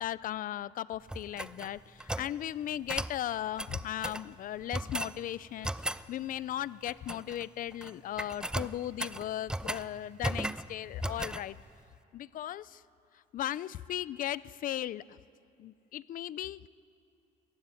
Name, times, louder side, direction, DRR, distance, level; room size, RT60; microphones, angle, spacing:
voice 1, 0.0-11.6 12.1-12.8 13.3-15.0 15.6-16.7, left 12 dB, 55° left, 19 dB, 0.5 m, -37 dB
sound 1, 1.1-2.3 2.9-3.2 3.6-4.3 4.7-5.2 5.6-6.0 6.9-7.4 7.7-7.9 8.2-9.9 10.2-10.7 11.0-11.4, right 1 dB, 5° right, 0.5 m, -36 dB
23.0 x 15.0 x 9.7 m, 2.6 s
cardioid pair, 110°, 17 cm